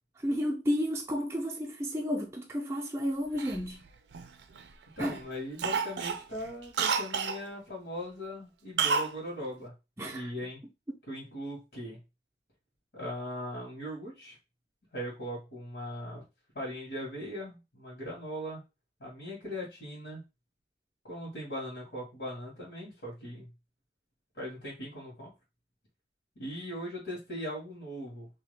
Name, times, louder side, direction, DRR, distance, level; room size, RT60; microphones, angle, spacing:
voice 1, 0.2-3.8 5.0-5.2 10.0-10.3, equal, 15° right, 0.4 m, -32 dB
Cough, 3.4-4.6 5.0-5.2 5.6-7.4 8.8-9.1 9.4-9.5, right 5 dB, 75° right, 0.4 m, -30 dB
voice 2, 5.0-9.7 10.1-10.6 11.1-12.0 12.9-14.4 14.9-16.2 16.5-18.6 19.0-20.2 21.0-23.5 24.3-25.3 26.4-28.3, equal, 80° left, 1.6 m, -39 dB
2.8 x 2.3 x 3.3 m
head